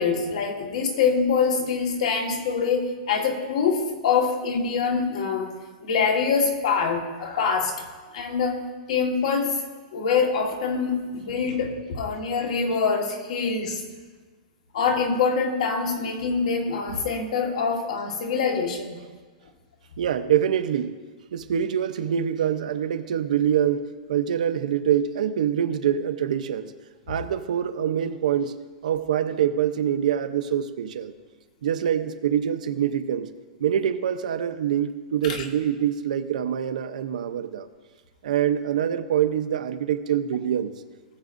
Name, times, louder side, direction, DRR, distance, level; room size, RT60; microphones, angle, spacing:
voice 1, 0.0-5.5 5.8-7.8 8.1-8.6 8.9-9.6 9.9-13.8 14.7-19.0 35.2-35.5, left 5 dB, 55° left, 3 dB, 1.5 m, -24 dB
voice 2, 20.0-20.9 21.3-26.7 27.1-28.6 28.8-31.1 31.6-33.3 33.6-37.7 38.2-40.7, right 9 dB, 70° right, 9 dB, 0.7 m, -25 dB
19.0 x 7.3 x 2.6 m, 1.4 s
supercardioid pair, 180°, 4 cm